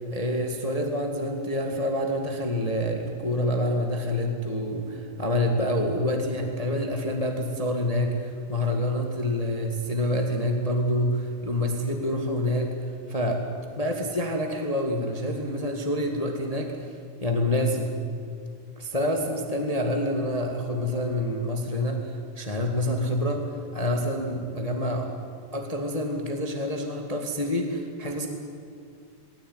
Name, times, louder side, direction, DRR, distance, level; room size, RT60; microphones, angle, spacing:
voice 1, 0.1-12.7 13.1-13.4 13.8-16.9 17.2-17.9 18.8-23.4 23.7-25.1 25.5-28.3, left 1 dB, 35° left, 2 dB, 0.6 m, -27 dB
20.0 x 18.0 x 9.6 m, 2.3 s
omnidirectional pair, 4.5 m